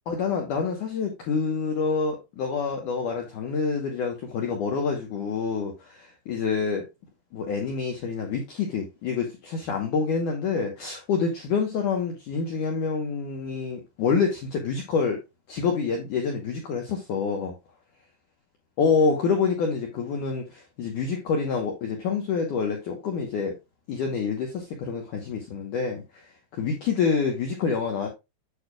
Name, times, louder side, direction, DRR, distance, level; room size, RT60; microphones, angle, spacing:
voice 1, 0.1-6.8 7.3-15.2 15.5-17.5 18.8-23.5 23.9-28.1, left 5 dB, 75° left, 1.8 m, -27 dB
8.4 x 6.4 x 2.3 m
omnidirectional pair, 5.2 m